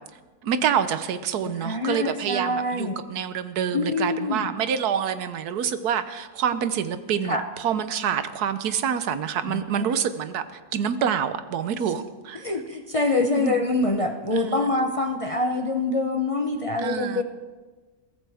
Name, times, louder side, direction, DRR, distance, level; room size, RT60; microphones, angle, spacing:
voice 1, 0.4-12.4 13.3-13.6 14.3-14.7 16.8-17.2, right 8 dB, 90° right, 1.4 m, -27 dB
voice 2, 1.4-2.9 3.7-4.5 7.2-7.4 9.5-9.9 12.4-17.2, left 2 dB, 30° left, 0.6 m, -25 dB
22.0 x 15.0 x 3.5 m
omnidirectional pair, 1.6 m